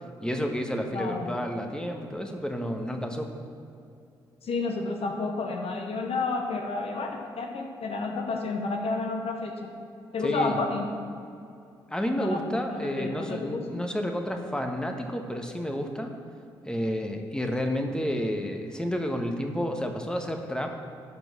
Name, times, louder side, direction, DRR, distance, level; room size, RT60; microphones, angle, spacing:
voice 1, 0.2-3.3 10.2-10.5 11.9-16.1 16.6-20.7, equal, 5° left, 3 dB, 1.3 m, -30 dB
voice 2, 0.9-1.3 4.4-9.7 10.1-10.9 12.2-13.8, left 3 dB, 60° left, 2 dB, 1.0 m, -31 dB
12.0 x 4.5 x 6.2 m, 2.5 s
hypercardioid pair, 40°, 12 cm